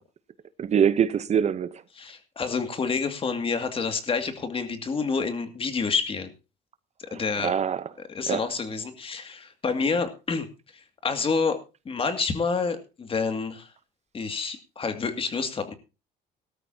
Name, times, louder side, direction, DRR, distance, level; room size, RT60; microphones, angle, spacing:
voice 1, 0.6-1.8 7.1-7.9 8.3-8.4, right 8 dB, 40° right, 0.8 m, -24 dB
voice 2, 2.0-6.3 7.0-7.6 8.1-13.7 14.1-15.7, left 4 dB, 35° left, 2.2 m, -28 dB
18.5 x 13.0 x 2.8 m
cardioid pair, 110°, 17 cm